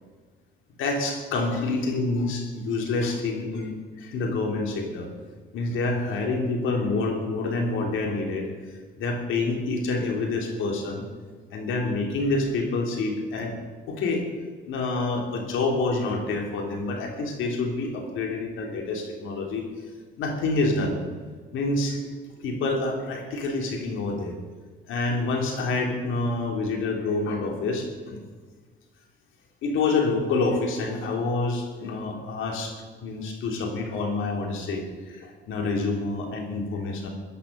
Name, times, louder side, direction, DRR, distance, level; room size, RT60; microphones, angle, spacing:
voice 1, 0.8-3.7 4.0-5.1 5.5-11.1 11.5-13.5 13.9-14.2 14.6-19.6 20.2-21.0 21.5-22.1 22.4-24.4 24.9-28.2 29.6-32.7 33.0-37.1, left 3 dB, 85° left, 2 dB, 3.1 m, -27 dB
15.5 x 10.0 x 6.6 m, 1.5 s
cardioid pair, 90°, 20 cm